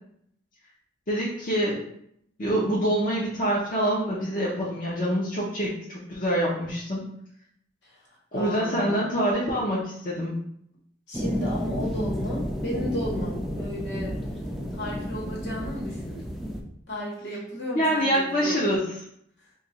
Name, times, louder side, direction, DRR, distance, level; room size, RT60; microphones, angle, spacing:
voice 1, 1.1-1.8 2.4-7.1 8.3-10.4 17.7-18.8, equal, 45° left, -6 dB, 0.7 m, -25 dB
voice 2, 8.3-9.1 11.1-14.1 14.7-16.3 16.9-18.8, left 1 dB, 70° left, -5 dB, 1.2 m, -33 dB
sound 1, 11.1-16.6, equal, ahead, 0.4 m, -31 dB
2.8 x 2.4 x 4.1 m, 0.71 s
head